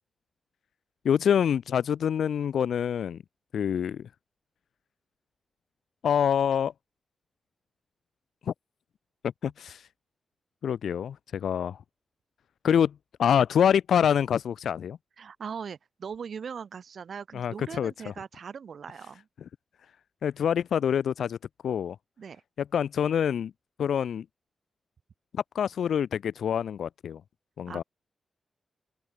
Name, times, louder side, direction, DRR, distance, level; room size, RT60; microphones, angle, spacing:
voice 1, 1.0-3.2 3.5-4.1 6.0-6.7 8.5-8.6 9.4-9.9 10.6-11.8 12.6-12.9 13.2-15.0 17.3-18.1 20.2-21.4 21.6-22.0 22.7-23.5 23.8-24.2 25.3-27.2 27.6-27.8, left 8 dB, 90° left, 0.6 m, -26 dB
voice 2, 15.2-19.3 22.2-22.4 27.7-27.8, right 6 dB, 60° right, 1.7 m, -40 dB
open air
wide cardioid pair, 145°, 0 cm